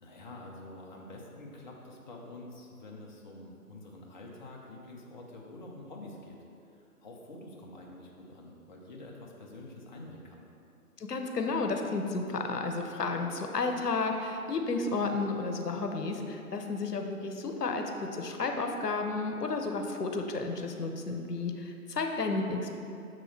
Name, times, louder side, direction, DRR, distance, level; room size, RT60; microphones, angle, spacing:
voice 1, 0.0-6.4 6.6-10.4, left 2 dB, 30° left, -1 dB, 0.7 m, -47 dB
voice 2, 11.0-22.8, left 3 dB, 90° left, 4 dB, 0.8 m, -32 dB
6.7 x 6.1 x 3.4 m, 2.6 s
figure-of-eight pair, 145°, 46 cm